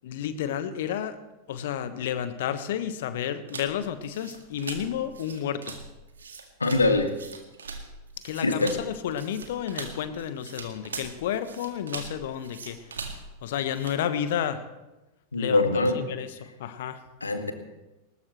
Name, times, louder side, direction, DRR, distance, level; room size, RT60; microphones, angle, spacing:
voice 1, 0.0-1.2 1.5-5.8 8.2-12.8 13.4-14.6 15.4-17.0, left 9 dB, 55° left, 11 dB, 1.2 m, -31 dB
sound 1, 3.5-14.0, right 4 dB, 70° right, 1.9 m, -41 dB
voice 2, 6.6-7.1 8.4-8.7 15.3-16.0 17.2-17.5, left 2 dB, 80° left, 7 dB, 1.8 m, -23 dB
20.0 x 19.0 x 3.2 m, 1.0 s
figure-of-eight pair, 90°, 0 cm